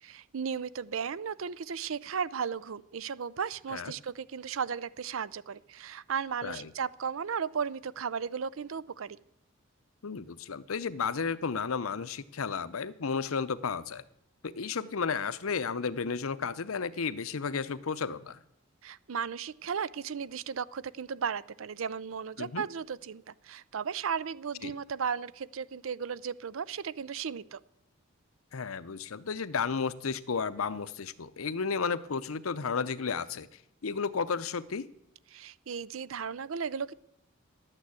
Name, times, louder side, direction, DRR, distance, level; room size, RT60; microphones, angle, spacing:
voice 1, 0.0-9.2 18.8-27.6 35.3-36.9, right 6 dB, 75° right, 20 dB, 0.5 m, -35 dB
voice 2, 10.0-14.0 14.4-18.4 22.4-22.6 24.6-24.7 28.5-33.5 33.8-34.9, left 5 dB, 90° left, 16 dB, 0.7 m, -33 dB
11.5 x 9.0 x 8.2 m, 0.77 s
head